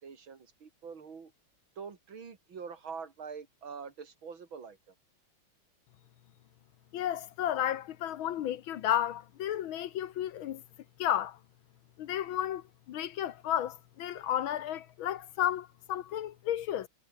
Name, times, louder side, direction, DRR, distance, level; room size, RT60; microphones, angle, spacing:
voice 1, 0.0-1.3 1.8-4.8, right 6 dB, 65° right, 3.2 m, -44 dB
voice 2, 6.9-10.6 11.0-11.4 12.0-16.9, left 11 dB, 70° left, 1.6 m, -32 dB
omnidirectional pair, 2.4 m